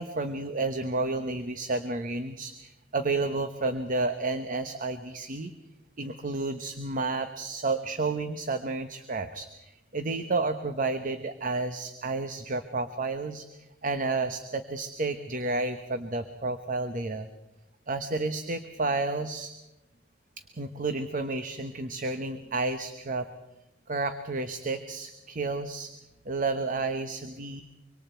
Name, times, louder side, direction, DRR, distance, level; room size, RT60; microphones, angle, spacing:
voice 1, 0.0-5.5 6.0-17.3 17.9-19.5 20.5-23.3 23.9-25.9 26.2-27.6, right 3 dB, 45° right, 8 dB, 1.0 m, -31 dB
25.5 x 24.0 x 4.5 m, 0.93 s
head